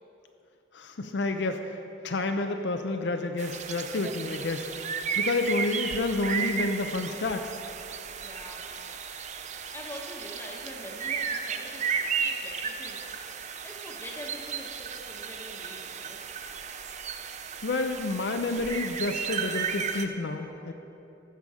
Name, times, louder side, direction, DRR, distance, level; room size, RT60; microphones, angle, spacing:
voice 1, 0.7-1.8 2.0-4.7 5.2-7.6 17.6-20.7, left 2 dB, 65° left, 6 dB, 0.5 m, -29 dB
sound 1, 3.4-20.1, right 6 dB, 40° right, 0.5 m, -34 dB
voice 2, 8.2-8.6 9.7-13.0 13.6-16.2, equal, 15° left, -1 dB, 1.2 m, -44 dB
14.5 x 6.9 x 4.9 m, 2.9 s
head